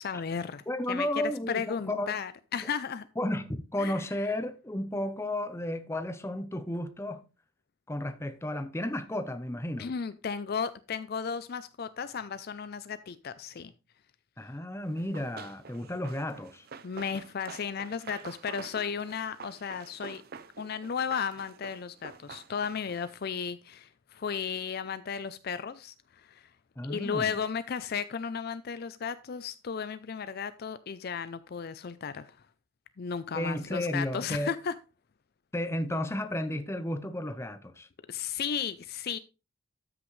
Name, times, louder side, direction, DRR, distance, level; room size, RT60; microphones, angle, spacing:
voice 1, 0.0-1.1 1.5-3.1 3.8-4.0 9.8-13.7 16.8-20.2 20.6-26.5 26.8-32.5 33.0-34.7 38.1-39.2, left 6 dB, 45° left, 0.4 m, -34 dB
voice 2, 0.7-2.2 3.2-7.2 7.9-9.9 14.4-16.7 26.8-27.3 33.3-34.5 35.5-37.9, left 1 dB, 10° left, 0.7 m, -33 dB
Run, 15.0-23.1, right 5 dB, 45° right, 0.5 m, -47 dB
13.0 x 6.1 x 3.2 m
head